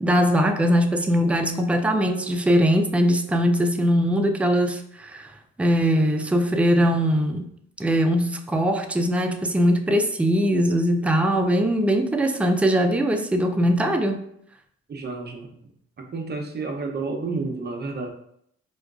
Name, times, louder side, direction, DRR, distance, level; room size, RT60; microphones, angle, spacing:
voice 1, 0.0-5.3 5.6-7.5 7.8-14.2, equal, 5° right, 5 dB, 0.3 m, -21 dB
voice 2, 14.9-15.6 16.0-18.1, right 3 dB, 35° right, 3 dB, 0.6 m, -30 dB
4.4 x 2.3 x 2.3 m, 0.71 s
cardioid pair, 75°, 29 cm